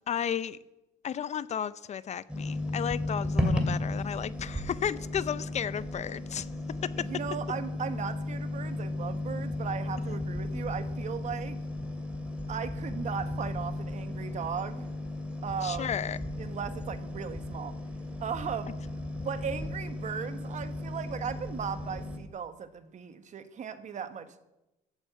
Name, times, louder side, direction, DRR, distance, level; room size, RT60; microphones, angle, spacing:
voice 1, 0.1-0.6 1.0-6.5 6.8-7.1 10.1-10.2 15.6-16.2, left 8 dB, 40° left, 0.6 m, -33 dB
sound 1, 2.3-22.2, left 1 dB, 5° right, 2.7 m, -35 dB
voice 2, 7.0-11.6 12.5-14.9 15.4-16.1 16.4-17.7 18.2-18.8 19.2-24.4, right 7 dB, 45° right, 1.3 m, -37 dB
14.0 x 9.0 x 8.1 m
cardioid pair, 110°, 17 cm